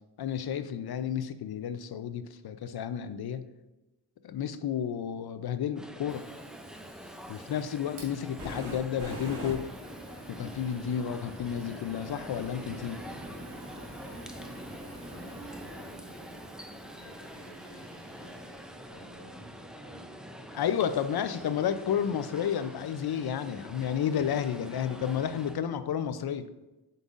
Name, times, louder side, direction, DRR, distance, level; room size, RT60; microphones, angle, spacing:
voice 1, 0.2-3.4 4.2-6.3 7.3-9.7 10.3-13.0 20.5-26.5, left 8 dB, 65° left, 11 dB, 0.5 m, -31 dB
sound 1, 5.8-25.6, equal, ahead, 0.3 m, -46 dB
Fire, 6.1-19.2, equal, 80° right, 2.0 m, -45 dB
voice 2, 14.5-16.3 17.0-20.5 21.7-21.9, right 1 dB, 35° left, -7 dB, 1.6 m, -52 dB
7.7 x 5.3 x 2.5 m, 1.0 s
wide cardioid pair, 120°, 41 cm